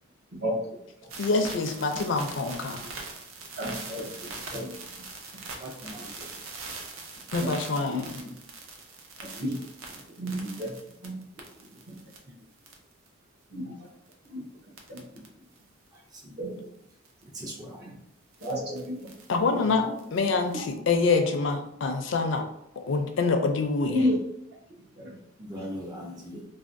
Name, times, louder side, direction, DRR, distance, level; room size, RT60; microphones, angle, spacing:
voice 1, 0.3-0.8 1.4-1.8 2.4-2.9 3.6-4.8 5.3-5.4 6.2-6.3 7.4-7.6 7.9-8.4 9.2-9.6 10.2-11.2 11.6-11.9 13.5-13.9 14.3-14.4 14.9-15.1 16.4-16.6 17.8-18.0 18.4-19.1 19.4-19.8 20.5-20.8 21.2-21.4 23.3-23.4 23.9-24.2 25.0-25.2 25.5-26.5, left 1 dB, 55° right, -4 dB, 0.9 m, -33 dB
sound 1, 1.1-12.2 12.6-13.1 14.1-14.3 14.8-15.3 15.6-15.7 17.0-17.2 18.3-19.4 20.0-20.7, right 3 dB, 90° right, 0.5 m, -42 dB
voice 2, 1.2-2.8 7.3-8.1 19.3-19.8 20.1-22.4 22.9-24.0, left 4 dB, 65° left, 5 dB, 0.4 m, -26 dB
voice 3, 5.6-6.3 16.1-16.3 17.3-17.8 19.8-19.9 25.4-26.4, equal, 20° right, -2 dB, 0.4 m, -40 dB
3.3 x 2.2 x 2.5 m, 0.74 s
head